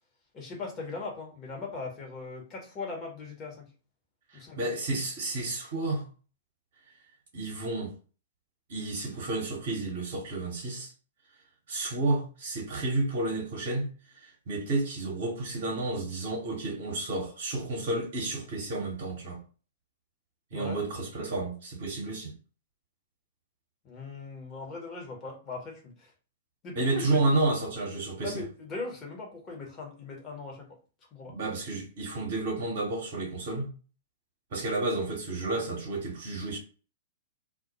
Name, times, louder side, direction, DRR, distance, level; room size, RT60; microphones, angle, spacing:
voice 1, 0.3-3.6 4.3-4.6 20.5-20.8 23.8-26.1 26.6-27.4 28.2-30.8 31.1-31.3, left 3 dB, 30° left, 0.9 m, -39 dB
voice 2, 4.3-6.1 7.3-7.9 8.7-10.9 11.7-13.9 14.2-19.4 20.5-22.3 26.7-28.4 31.2-33.7 34.5-36.6, right 2 dB, 50° right, 0.8 m, -31 dB
2.2 x 2.0 x 2.8 m
figure-of-eight pair, 105°, 0 cm